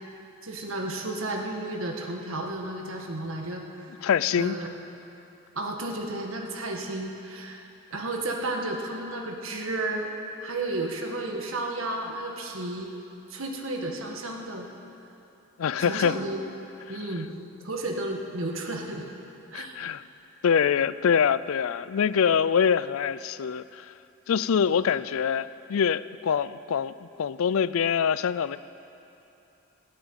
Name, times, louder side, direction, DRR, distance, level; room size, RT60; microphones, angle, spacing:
voice 1, 0.4-3.9 4.4-4.7 5.5-7.6 7.9-10.1 10.4-12.9 13.3-14.7 15.8-16.5 16.9-17.3 17.6-19.1 19.5-19.8, right 2 dB, 65° right, 2 dB, 1.7 m, -32 dB
voice 2, 4.0-4.6 15.6-16.2 19.5-20.0 20.4-23.9 24.3-28.6, left 7 dB, 70° left, 16 dB, 0.4 m, -24 dB
16.0 x 8.6 x 9.0 m, 2.9 s
head